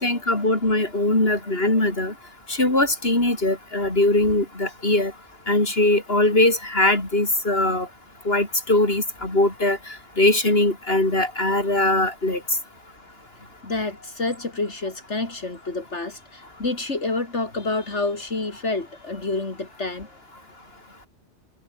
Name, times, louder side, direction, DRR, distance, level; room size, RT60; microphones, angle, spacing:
voice 1, 0.0-2.1 2.5-5.1 5.5-7.9 8.2-12.4, left 2 dB, 55° left, 6.1 m, -21 dB
voice 2, 13.6-20.1, left 3 dB, 70° left, 3.9 m, -28 dB
omnidirectional pair, 1.2 m